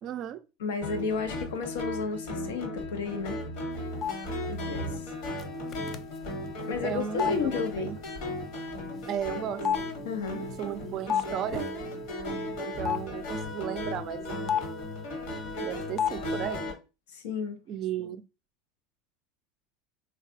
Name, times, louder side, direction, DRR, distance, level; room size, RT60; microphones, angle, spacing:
voice 1, 0.0-0.4 6.8-8.0 9.1-9.6 10.6-11.7 12.6-14.5 15.6-16.7 17.7-18.2, right 10 dB, 50° right, 0.4 m, -35 dB
voice 2, 0.6-3.4 4.5-5.1 6.7-7.9 10.0-10.4 17.1-17.6, left 5 dB, 85° left, 0.6 m, -32 dB
sound 1, 0.8-16.7, left 1 dB, 65° left, 1.2 m, -36 dB
sound 2, 4.0-4.1 5.4-5.5 5.7-6.2 7.2-7.3 9.0-9.1 9.6-11.3 11.5-11.7 12.8-13.0 14.5-14.8 16.0-16.2 16.4-16.6, left 9 dB, 40° left, 0.4 m, -29 dB
3.2 x 2.3 x 2.7 m
hypercardioid pair, 95°, 0 cm